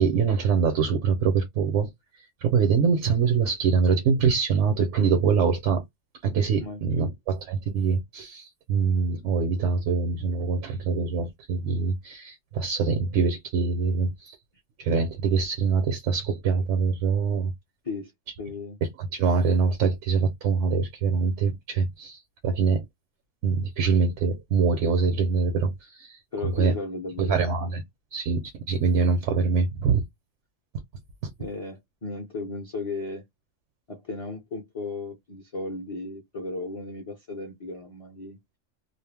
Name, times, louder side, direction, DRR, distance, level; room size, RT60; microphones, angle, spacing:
voice 1, 0.0-1.9 2.4-5.8 6.2-14.4 14.8-17.5 19.0-22.9 23.4-26.7 27.2-27.8 28.1-30.0 31.2-31.3, right 5 dB, 70° right, 0.9 m, -24 dB
voice 2, 6.6-7.1 17.8-18.1 18.4-18.8 26.3-27.7 29.0-29.1 31.4-33.2 33.9-38.4, left 3 dB, 35° left, 0.6 m, -35 dB
2.4 x 2.0 x 3.2 m
omnidirectional pair, 1.3 m